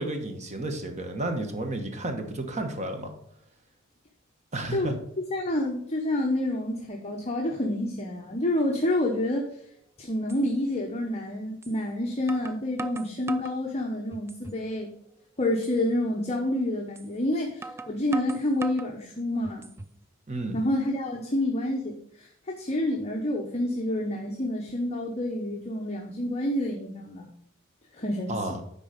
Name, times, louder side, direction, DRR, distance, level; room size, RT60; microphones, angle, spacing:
voice 1, 0.0-3.1 4.5-4.9 20.3-20.6 28.3-28.6, right 2 dB, 35° right, 5 dB, 1.2 m, -32 dB
voice 2, 5.3-9.5 10.0-14.9 15.4-19.7 20.5-27.3 27.9-28.6, left 1 dB, 30° left, 0 dB, 0.9 m, -28 dB
sound 1, 9.7-9.8 10.3-10.4 11.6-11.8 12.3-13.6 14.1-14.7 15.0-15.1 15.6-15.8 17.0-17.1 17.6-18.9 19.4-20.0, right 3 dB, 10° right, 0.3 m, -39 dB
10.0 x 4.0 x 5.1 m, 0.70 s
head